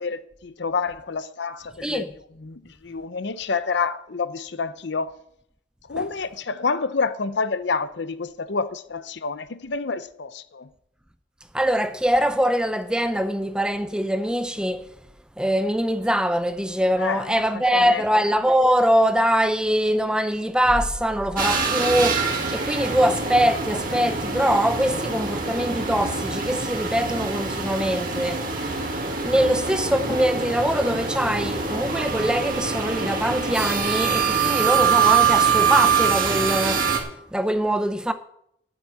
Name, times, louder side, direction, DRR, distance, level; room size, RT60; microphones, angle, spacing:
voice 1, 0.0-2.1 2.4-5.1 5.9-10.7 17.0-17.2 17.5-18.0, left 4 dB, 60° left, 0.6 m, -28 dB
voice 2, 1.8-2.1 5.9-6.1 11.5-14.9 15.4-28.5 29.2-36.9 37.3-38.1, equal, 5° right, 0.5 m, -23 dB
sound 1, 21.4-37.0, right 6 dB, 45° right, 1.9 m, -24 dB
10.0 x 7.4 x 8.2 m
head